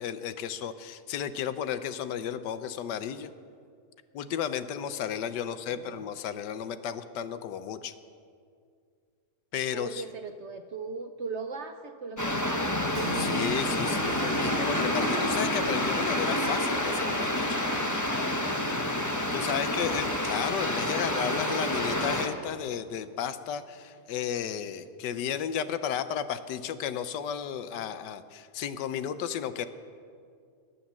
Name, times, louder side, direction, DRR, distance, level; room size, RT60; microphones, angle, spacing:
voice 1, 0.0-3.3 4.1-7.9 9.5-10.0 13.1-17.6 19.3-29.7, left 9 dB, 80° left, 12 dB, 1.4 m, -33 dB
voice 2, 5.3-6.0 9.7-12.8 19.5-20.2, right 4 dB, 60° right, 8 dB, 0.7 m, -39 dB
sound 1, 12.2-22.3, left 1 dB, 15° left, 0.9 m, -28 dB
Keyboard (musical), 12.9-23.3, right 4 dB, 30° right, 1.2 m, -45 dB
21.0 x 8.6 x 7.2 m, 2.3 s
omnidirectional pair, 1.8 m